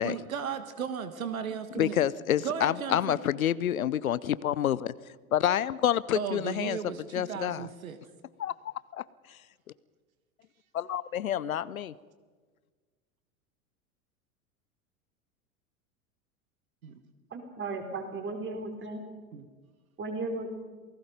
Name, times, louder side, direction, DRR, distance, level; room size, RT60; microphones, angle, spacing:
voice 1, 0.0-2.0 2.4-3.2 6.1-8.0 16.8-17.0 19.3-19.5, right 7 dB, 70° right, 10 dB, 1.7 m, -35 dB
voice 2, 1.8-4.9 5.3-7.7 8.4-9.0 9.3-9.4 10.7-11.9, left 10 dB, 75° left, 19 dB, 0.8 m, -28 dB
voice 3, 17.3-19.0 20.0-20.5, right 3 dB, 25° right, 4 dB, 4.7 m, -35 dB
27.5 x 18.5 x 5.3 m, 1.5 s
figure-of-eight pair, 85°, 43 cm